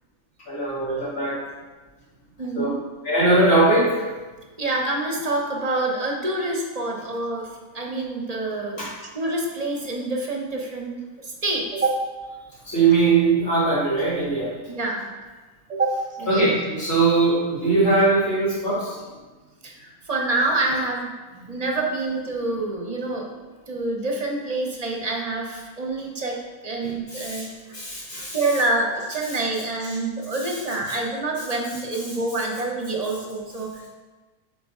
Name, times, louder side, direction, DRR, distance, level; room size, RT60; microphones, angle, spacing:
voice 1, 0.5-1.4 2.5-2.7 3.0-4.0 8.8-8.9 12.6-14.5 16.3-19.0 21.4-21.5 26.8-27.4 27.7-28.4, right 3 dB, 75° left, -9 dB, 2.6 m, -21 dB
voice 2, 2.4-2.8 4.6-8.9 9.1-12.0 14.7-15.1 15.7-16.5 19.6-21.1 21.5-23.3 23.7-27.5 28.3-33.8, right 2 dB, 35° right, 0 dB, 0.8 m, -27 dB
8.3 x 3.6 x 3.6 m, 1.3 s
omnidirectional pair, 1.4 m